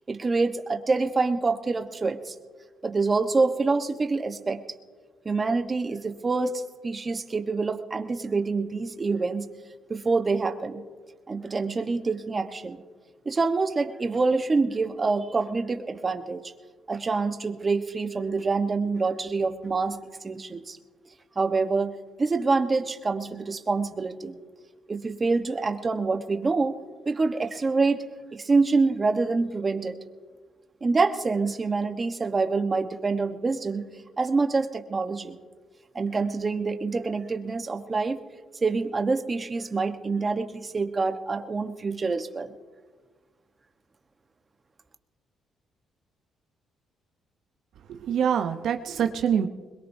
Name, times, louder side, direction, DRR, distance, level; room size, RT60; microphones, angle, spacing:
voice 1, 0.1-2.3 2.8-4.6 5.2-9.5 9.9-10.8 11.3-12.8 13.2-16.5 16.9-20.0 20.2-20.8 21.4-21.9 22.2-24.4 24.9-26.8 27.0-28.0 28.3-29.9 30.8-33.8 34.2-35.4 35.9-38.2 38.6-42.5, right 4 dB, 30° right, 6 dB, 1.1 m, -26 dB
voice 2, 47.9-49.5, right 8 dB, 75° right, 6 dB, 0.8 m, -25 dB
22.0 x 21.5 x 2.7 m, 1.4 s
cardioid pair, 90°, 0 cm